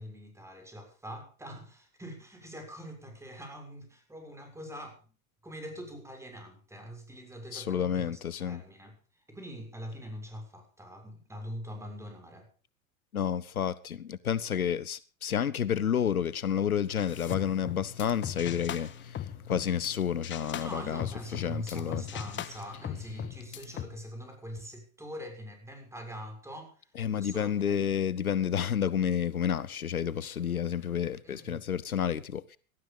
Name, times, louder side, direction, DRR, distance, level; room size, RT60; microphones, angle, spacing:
voice 1, 0.0-5.0 5.4-12.5 20.6-27.8 31.2-31.6, equal, 5° right, 6.5 m, -43 dB
voice 2, 7.5-8.6 13.1-21.1 21.3-22.0 27.0-32.6, left 8 dB, 90° left, 0.9 m, -30 dB
sound 1, 17.0-19.9 20.2-23.8, left 10 dB, 25° left, 1.4 m, -39 dB
18.5 x 13.0 x 5.3 m
figure-of-eight pair, 90°, 42 cm